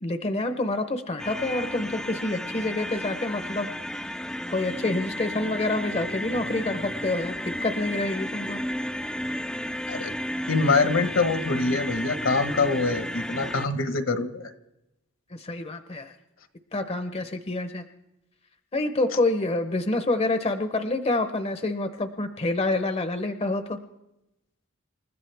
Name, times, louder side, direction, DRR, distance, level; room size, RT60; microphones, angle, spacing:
voice 1, 0.0-3.7 4.5-8.6 15.3-16.1 16.7-17.9 18.7-23.8, left 2 dB, 30° left, 8 dB, 0.8 m, -27 dB
sound 1, 1.2-13.7, left 1 dB, 5° left, 0.5 m, -33 dB
voice 2, 10.5-14.5, left 3 dB, 65° left, 9 dB, 1.3 m, -24 dB
28.0 x 14.0 x 3.5 m, 0.88 s
head